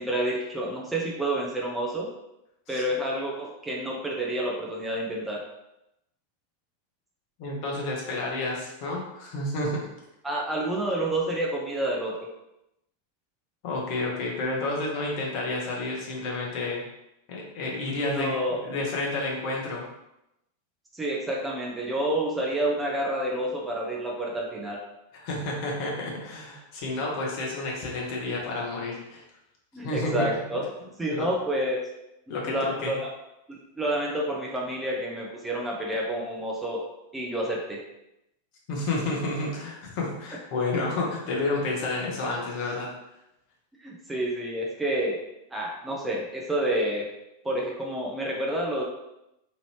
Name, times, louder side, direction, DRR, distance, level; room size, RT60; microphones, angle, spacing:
voice 1, 0.0-2.1 2.7-5.4 10.2-12.3 18.1-18.6 20.9-24.8 29.7-30.7 31.0-31.8 32.3-33.0 33.5-36.8 37.1-37.8 40.7-40.8 43.8-45.2 45.5-47.1 47.4-48.8, right 1 dB, 10° right, -2 dB, 0.5 m, -29 dB
voice 2, 7.4-9.9 13.6-16.8 17.3-18.4 18.6-19.8 25.1-29.2 29.8-30.3 31.1-31.3 32.3-33.0 38.7-42.9, left 2 dB, 45° left, -2 dB, 0.9 m, -30 dB
3.0 x 2.5 x 3.1 m, 0.87 s
figure-of-eight pair, 90°, 0 cm